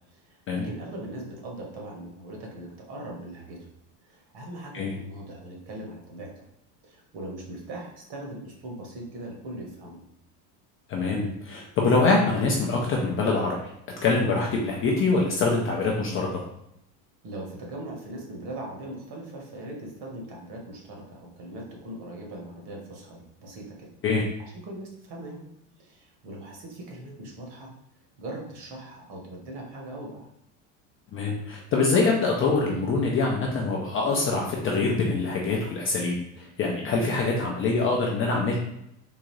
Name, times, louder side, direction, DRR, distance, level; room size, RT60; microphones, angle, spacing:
voice 1, 0.1-3.7 4.0-6.3 6.8-10.0 17.2-23.9 24.4-25.4 25.8-27.7 28.2-30.3, right 1 dB, 50° right, -1 dB, 1.3 m, -40 dB
voice 2, 10.9-13.7 14.0-16.4 24.0-24.2 31.1-38.6, left 3 dB, 30° left, -1 dB, 0.4 m, -24 dB
3.7 x 2.5 x 3.1 m, 0.80 s
supercardioid pair, 115°, 49 cm